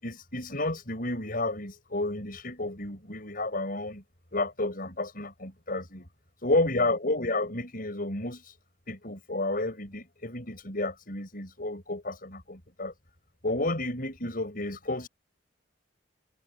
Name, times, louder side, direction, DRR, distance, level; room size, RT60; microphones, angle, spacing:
voice 1, 0.0-4.0 4.3-6.1 6.4-8.5 8.9-12.9 13.4-15.1, left 2 dB, 50° left, 6.8 m, -31 dB
head